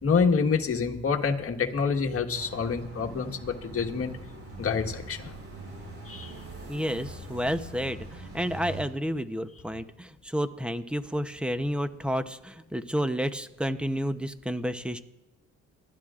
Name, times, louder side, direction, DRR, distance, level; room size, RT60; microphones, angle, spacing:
voice 1, 0.0-4.2 4.6-5.3 6.0-6.3, left 5 dB, 50° left, 4 dB, 1.6 m, -27 dB
sound 1, 2.3-8.9, right 2 dB, 50° right, 6.5 m, -43 dB
voice 2, 6.7-15.0, equal, 5° right, 10 dB, 0.8 m, -30 dB
28.0 x 12.5 x 2.5 m, 0.99 s
cardioid pair, 90°, 30 cm